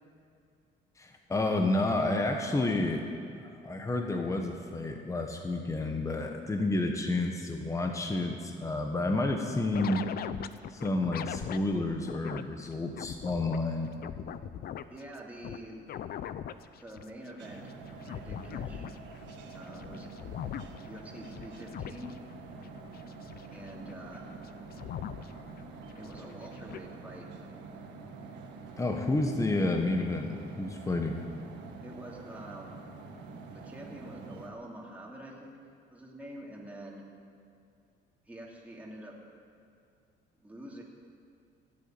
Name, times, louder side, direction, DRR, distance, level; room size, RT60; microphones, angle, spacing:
voice 1, 1.0-3.1 3.4-10.0 10.7-13.9 28.8-31.2, left 2 dB, 15° left, 3 dB, 1.3 m, -30 dB
sound 1, 9.7-12.4 12.7-13.6 13.9-15.6 15.9-25.6 25.9-26.8, left 10 dB, 55° left, 0.6 m, -40 dB
voice 2, 14.9-15.8 16.8-17.8 18.1-18.9 19.5-20.1 20.8-22.1 23.5-24.3 26.0-27.3 31.8-32.8 33.5-35.6 35.9-37.0 38.2-39.2 40.4-40.8, right 1 dB, 10° right, -3 dB, 2.8 m, -46 dB
sound 2, 17.4-34.5, right 3 dB, 75° right, 1.7 m, -46 dB
16.0 x 8.5 x 9.1 m, 2.5 s
cardioid pair, 115°, 19 cm